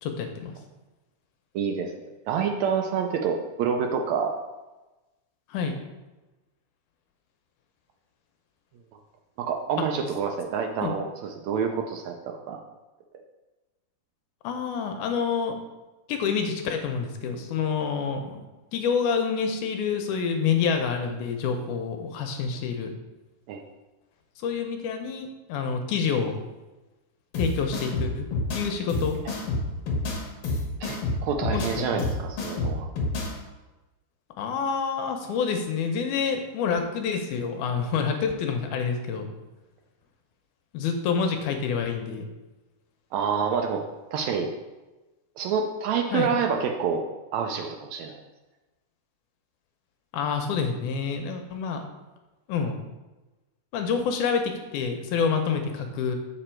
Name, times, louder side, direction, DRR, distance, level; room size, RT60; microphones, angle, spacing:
voice 1, 0.0-0.5 5.5-5.8 9.8-9.9 10.8-10.9 14.4-15.6 16.1-18.5 18.7-22.9 24.4-26.4 27.4-28.3 28.5-29.2 31.5-32.0 34.4-39.3 40.7-42.2 46.1-46.3 50.1-51.8 52.5-52.8 53.7-56.2, left 6 dB, 80° left, 5 dB, 2.0 m, -27 dB
voice 2, 1.5-1.9 2.3-4.3 9.4-12.1 12.5-12.6 23.5-23.6 30.8-32.9 43.1-44.5 45.4-47.0 47.3-48.2, right 6 dB, 80° right, 3 dB, 1.6 m, -27 dB
sound 1, 27.3-33.3, left 2 dB, 60° left, 1.7 m, -29 dB
6.8 x 5.0 x 4.3 m, 1.1 s
omnidirectional pair, 3.8 m